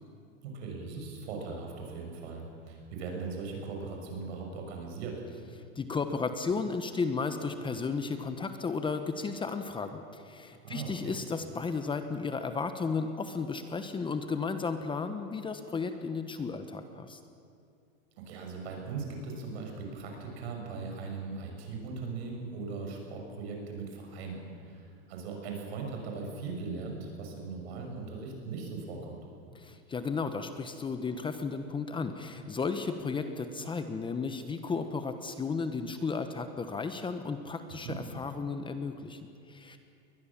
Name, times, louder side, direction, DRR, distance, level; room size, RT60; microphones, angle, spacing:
voice 1, 0.4-5.1 10.6-11.1 18.2-29.2 37.8-38.0, right 4 dB, 70° right, 1 dB, 6.4 m, -39 dB
voice 2, 5.7-17.2 29.5-39.8, left 4 dB, 15° left, 8 dB, 1.1 m, -34 dB
22.0 x 19.5 x 7.3 m, 2.5 s
supercardioid pair, 135°, 33 cm